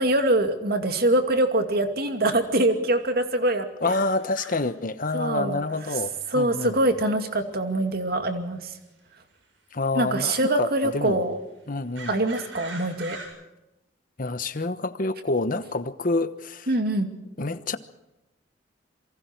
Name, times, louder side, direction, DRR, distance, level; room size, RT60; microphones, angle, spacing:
voice 1, 0.0-3.9 5.1-5.6 5.9-6.0 6.3-8.7 9.9-11.4 12.1-13.2 16.7-17.1, right 1 dB, 55° right, 2.4 m, -24 dB
voice 2, 3.8-6.8 9.7-11.3 11.7-12.1 14.2-16.7 17.4-17.8, left 2 dB, 45° left, 1.1 m, -28 dB
sound 1, 3.8-4.7 6.2-6.3 6.6-6.7 7.2-7.3 8.7-8.8 10.0-10.1 11.9-13.3, right 3 dB, 80° right, 7.8 m, -41 dB
27.5 x 23.5 x 4.6 m
head